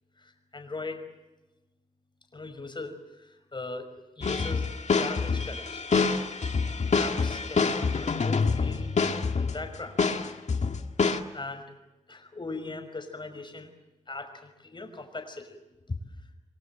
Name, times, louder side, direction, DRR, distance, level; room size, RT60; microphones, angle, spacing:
voice 1, 0.2-1.1 2.3-4.7 5.0-6.2 7.0-8.9 9.4-10.0 11.3-11.7 12.1-13.7 14.1-15.6 15.9-16.0, left 3 dB, 40° left, 6 dB, 5.7 m, -39 dB
sound 1, 4.2-9.6 10.0-11.2, left 4 dB, 70° left, 1.9 m, -26 dB
29.0 x 23.0 x 7.7 m, 1.0 s
wide cardioid pair, 100°, 12 cm